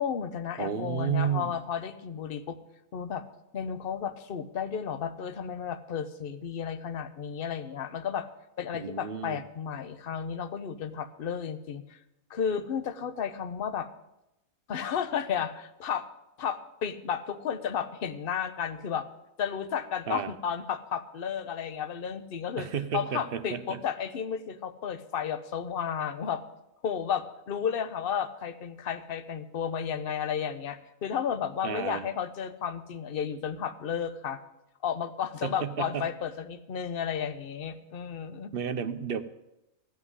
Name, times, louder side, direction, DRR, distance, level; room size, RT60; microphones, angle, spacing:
voice 1, 0.0-2.6 2.9-3.2 3.5-8.3 8.6-12.0 12.3-13.9 14.7-16.1 16.4-19.1 19.4-22.7 22.9-26.4 26.8-34.4 34.8-38.5, left 7 dB, 50° left, 12 dB, 0.9 m, -33 dB
voice 2, 0.6-1.5 8.7-9.4 20.1-20.3 22.6-23.8 31.6-32.0 35.4-36.1 38.5-39.2, right 7 dB, 50° right, 11 dB, 0.7 m, -32 dB
15.0 x 5.8 x 9.6 m, 0.90 s
omnidirectional pair, 1.5 m